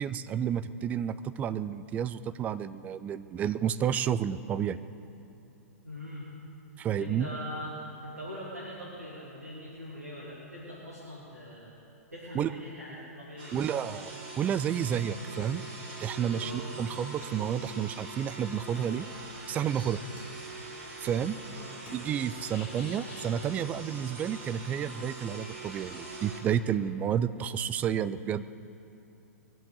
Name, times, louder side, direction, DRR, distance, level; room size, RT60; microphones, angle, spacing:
voice 1, 0.0-4.8 6.8-7.3 12.3-12.5 13.5-14.1 14.4-15.6 16.0-19.1 19.5-20.0 21.0-21.4 21.9-28.5, right 9 dB, 20° right, 14 dB, 0.4 m, -30 dB
voice 2, 5.8-6.3 7.0-11.7 12.1-13.7 16.3-16.7 21.0-21.2 21.5-21.7, equal, 80° right, -7 dB, 3.0 m, -42 dB
sound 1, 13.4-26.4, right 3 dB, 40° right, 3.0 m, -43 dB
sound 2, 17.2-18.2 18.7-19.5 20.2-20.9 21.3-21.4 21.7-22.4, left 2 dB, 20° left, 3.5 m, -55 dB
sound 3, 19.1-27.0, left 4 dB, 45° left, 2.7 m, -56 dB
21.0 x 7.7 x 8.1 m, 2.7 s
figure-of-eight pair, 110°, 8 cm